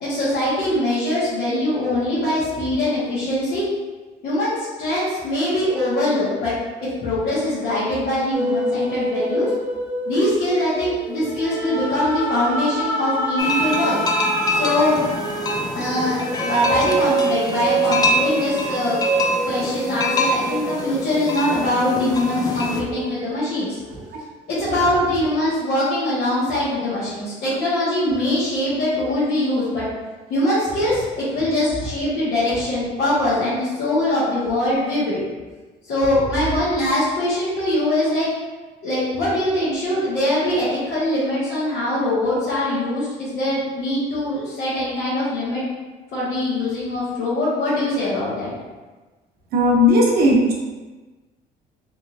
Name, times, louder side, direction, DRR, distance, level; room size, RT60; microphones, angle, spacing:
voice 1, 0.0-3.6 4.2-6.5 6.8-9.5 10.0-14.0 14.5-15.0 15.7-16.2 16.4-19.0 19.4-23.8 24.5-29.9 30.3-35.2 35.8-38.3 38.8-45.6 46.1-48.5, left 1 dB, 75° left, -12 dB, 1.3 m, -22 dB
sound 1, 8.3-22.1 22.5-24.1, right 2 dB, 10° right, 0.7 m, -26 dB
sound 2, 13.4-22.8, left 1 dB, 25° left, 0.4 m, -25 dB
voice 2, 49.5-50.5, left 1 dB, 65° right, -3 dB, 0.9 m, -15 dB
3.5 x 3.1 x 2.6 m, 1.3 s
cardioid pair, 110°, 17 cm